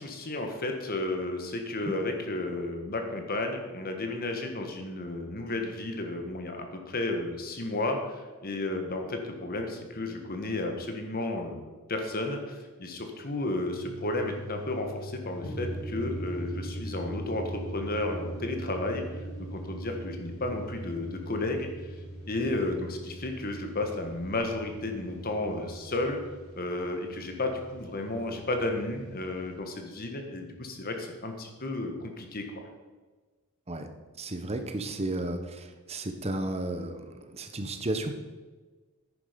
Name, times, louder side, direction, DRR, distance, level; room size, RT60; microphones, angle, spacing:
voice 1, 0.0-19.0 19.4-21.7 22.3-26.2 26.5-32.7, left 2 dB, 40° left, 4 dB, 1.5 m, -33 dB
sound 1, 13.7-29.6, right 1 dB, 75° left, 3.9 m, -41 dB
voice 2, 34.2-35.4 35.9-37.1 37.3-38.1, right 1 dB, 30° right, 7 dB, 1.0 m, -32 dB
10.0 x 9.9 x 5.2 m, 1.3 s
head